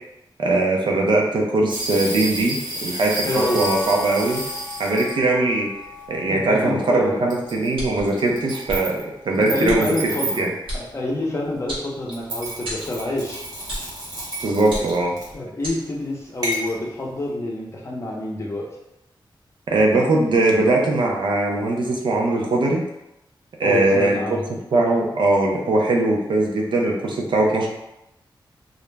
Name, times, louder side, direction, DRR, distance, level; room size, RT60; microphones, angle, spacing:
voice 1, 0.4-4.4 4.8-5.7 6.1-9.0 9.2-10.1 10.4-10.5 14.4-15.2 19.7-22.8 23.6-27.7, right 2 dB, 70° right, 0 dB, 0.5 m, -20 dB
sound 1, 1.7-5.1 5.9-6.0 7.3-7.7 8.0-9.0 9.3-10.5 12.1-15.4 16.4-16.7, right 1 dB, 45° right, 0.9 m, -31 dB
voice 2, 3.2-3.7 6.3-7.2 9.4-10.5 10.7-13.4 14.8-14.9 15.3-18.7 23.6-24.4, left 1 dB, 35° left, -3 dB, 0.5 m, -27 dB
sound 2, 3.3-9.6 10.2-11.5 13.0-13.1, left 3 dB, 5° right, 0.7 m, -40 dB
sound 3, 7.7-8.1 8.7-8.8 9.7-9.8 10.7-10.8 11.7-12.3 12.6-12.9 13.7-13.9 14.6-15.1 15.6-15.8, equal, 90° right, 1.0 m, -31 dB
2.4 x 2.0 x 3.2 m, 0.89 s
wide cardioid pair, 165°, 9 cm